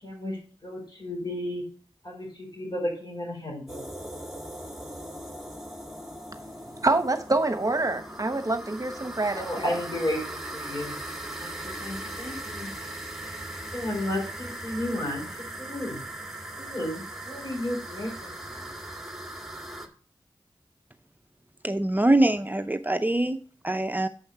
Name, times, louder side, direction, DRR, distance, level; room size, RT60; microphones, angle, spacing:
voice 1, 0.0-1.6 2.0-3.8 9.3-10.9 11.4-12.7 13.7-16.0 16.6-18.7, left 1 dB, 50° left, 4.9 m, -33 dB
sound 1, 3.7-19.9, right 1 dB, ahead, 1.8 m, -39 dB
voice 2, 6.8-9.7, right 2 dB, 40° right, 1.0 m, -26 dB
voice 3, 21.6-24.1, right 1 dB, 20° right, 0.6 m, -24 dB
7.1 x 5.6 x 5.5 m
cardioid pair, 40°, 9 cm